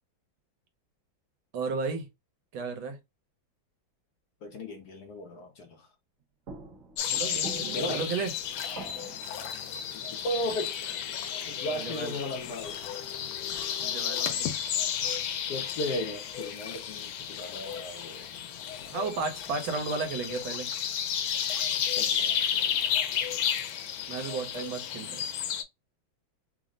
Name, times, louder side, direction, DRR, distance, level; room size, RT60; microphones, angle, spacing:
voice 1, 1.5-2.1 2.5-3.0 7.0-8.3 11.8-12.2 13.8-14.5 18.9-20.7 24.1-25.2, right 4 dB, 80° right, 1.7 m, -33 dB
voice 2, 4.4-5.9 7.7-8.0 10.2-11.0 11.5-12.8 15.5-18.3 18.8-19.0 21.9-23.0, equal, 65° left, 1.0 m, -36 dB
sound 1, 6.2-6.3 6.5-12.3 15.0-15.8 17.4-17.5, right 4 dB, 50° right, 1.2 m, -47 dB
sound 2, 7.0-25.6, left 9 dB, 85° left, 1.4 m, -32 dB
3.7 x 2.1 x 3.7 m
omnidirectional pair, 2.2 m